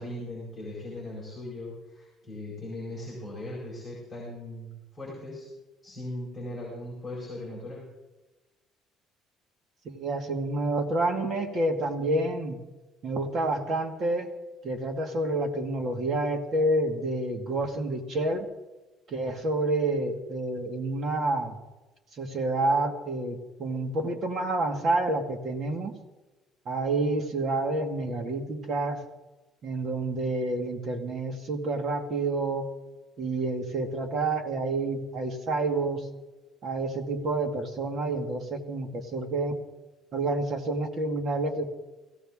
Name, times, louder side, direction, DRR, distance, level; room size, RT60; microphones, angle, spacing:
voice 1, 0.0-5.5 5.8-7.9, left 1 dB, 10° left, -5 dB, 4.5 m, -39 dB
voice 2, 9.9-12.6 13.0-14.3 14.6-18.5 19.1-21.6 22.2-25.9 26.7-29.1 29.6-32.7 33.2-36.1 36.6-39.6 40.1-41.7, right 2 dB, 40° right, 4 dB, 1.9 m, -28 dB
17.0 x 16.5 x 3.6 m, 1.1 s
cardioid pair, 165°, 0 cm